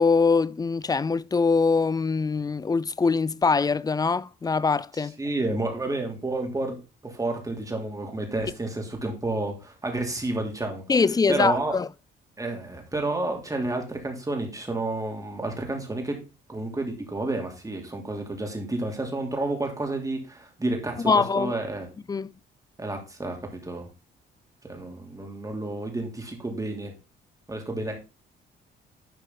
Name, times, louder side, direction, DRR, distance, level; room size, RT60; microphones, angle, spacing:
voice 1, 0.0-5.2 10.9-11.9 21.0-21.5 22.1-22.3, left 4 dB, 20° left, 0.4 m, -23 dB
voice 2, 4.9-6.8 7.0-10.8 11.3-11.7 12.4-16.2 16.5-21.9 22.8-23.4 23.6-23.9 24.6-26.9 27.5-27.9, right 2 dB, 15° right, 2.9 m, -30 dB
11.5 x 4.8 x 3.9 m
cardioid pair, 90°, 20 cm